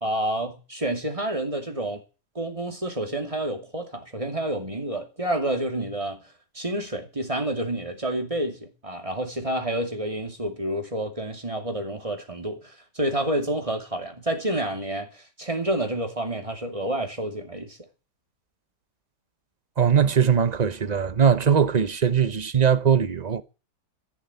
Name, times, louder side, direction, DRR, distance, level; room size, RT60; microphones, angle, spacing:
voice 1, 0.0-2.0 2.3-6.2 6.5-17.8, right 1 dB, 20° right, 2.5 m, -29 dB
voice 2, 19.8-23.4, right 7 dB, 35° right, 0.7 m, -20 dB
14.5 x 7.3 x 9.6 m
omnidirectional pair, 1.8 m